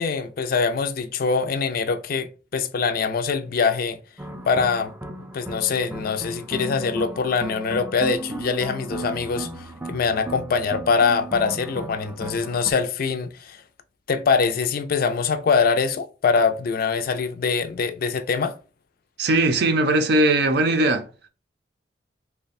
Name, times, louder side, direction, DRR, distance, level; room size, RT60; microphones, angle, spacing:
voice 1, 0.0-4.0 4.5-4.9 5.3-13.6 14.1-18.6, left 5 dB, 55° left, 0.4 m, -23 dB
sound 1, 4.2-12.7, right 2 dB, 10° right, 0.4 m, -35 dB
voice 2, 19.2-21.1, right 2 dB, 65° right, 0.5 m, -19 dB
3.2 x 2.2 x 4.0 m
head